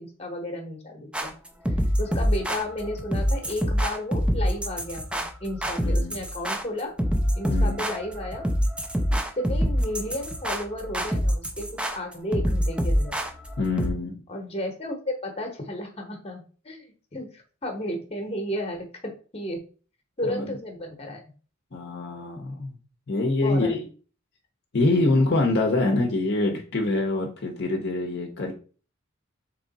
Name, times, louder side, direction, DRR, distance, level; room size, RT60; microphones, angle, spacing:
voice 1, 0.0-1.3 2.0-6.9 7.4-8.5 9.1-13.2 14.3-16.9 17.1-19.6 20.2-21.2 23.4-23.8, left 1 dB, 30° left, 3 dB, 1.0 m, -33 dB
sound 1, 1.1-13.9, equal, 5° right, 0.4 m, -26 dB
voice 2, 5.8-6.2 7.5-7.8 13.6-14.2 20.2-20.6 21.7-22.7 23.1-23.8 24.7-28.5, left 2 dB, 55° left, 2 dB, 0.7 m, -25 dB
3.6 x 3.1 x 4.0 m, 0.39 s
head